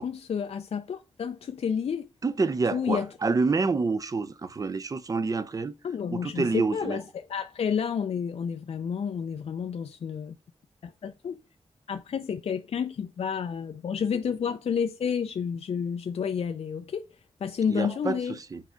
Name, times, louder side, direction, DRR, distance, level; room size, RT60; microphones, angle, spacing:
voice 1, 0.0-2.1 2.7-3.1 5.8-10.4 10.8-11.4 11.9-17.1 17.4-18.4, left 7 dB, 70° left, 0.5 m, -30 dB
voice 2, 2.2-5.7 6.1-7.0 17.7-18.2 18.5-18.6, right 4 dB, 35° right, 0.6 m, -27 dB
7.4 x 4.6 x 5.0 m
wide cardioid pair, 170°, 11 cm